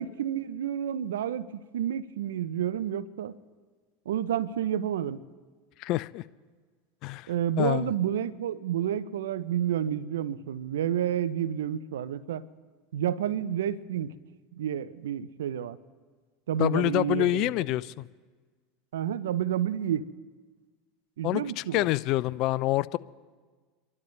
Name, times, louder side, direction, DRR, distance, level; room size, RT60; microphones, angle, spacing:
voice 1, 0.0-3.4 4.1-5.2 7.3-12.4 12.9-14.1 14.5-15.8 16.5-17.5 18.9-20.0 21.2-21.9, right 10 dB, 80° right, 0.6 m, -30 dB
voice 2, 5.8-6.2 7.0-7.3 7.6-7.9 16.6-18.1 21.2-23.0, left 16 dB, 55° left, 0.4 m, -27 dB
28.5 x 12.0 x 3.3 m
hypercardioid pair, 90°, 0 cm